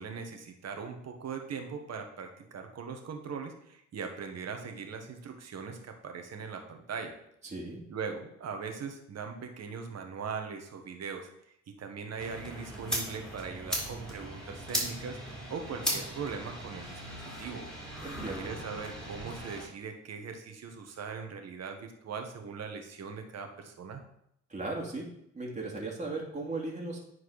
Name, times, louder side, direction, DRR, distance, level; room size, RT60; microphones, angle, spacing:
voice 1, 0.0-7.1 7.9-11.3 11.7-17.0 17.4-17.6 18.4-24.0, right 5 dB, 55° right, 5 dB, 1.5 m, -40 dB
voice 2, 7.4-7.8 18.0-18.6 24.5-25.1 25.3-27.0, right 2 dB, 25° right, -2 dB, 2.6 m, -37 dB
sound 1, 12.2-19.7, equal, ahead, 3.8 m, -38 dB
9.7 x 4.8 x 4.9 m, 0.75 s
cardioid pair, 90°, 30 cm